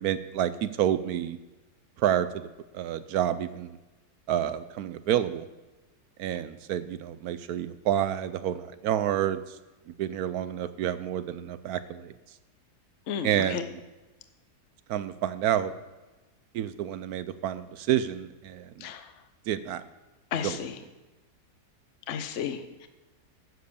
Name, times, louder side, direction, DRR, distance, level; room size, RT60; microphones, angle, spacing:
voice 1, 0.0-1.4 2.0-2.5 2.7-3.8 4.3-5.5 6.2-9.6 9.9-12.1 13.2-13.8 14.9-15.7 16.5-18.9 19.5-19.8 20.4-20.6, right 10 dB, 75° right, 13 dB, 1.0 m, -29 dB
voice 2, 13.1-13.6 18.8-19.0 20.3-20.8 22.1-22.9, left 8 dB, 55° left, 8 dB, 1.0 m, -33 dB
10.5 x 7.5 x 6.8 m, 1.1 s
omnidirectional pair, 1.7 m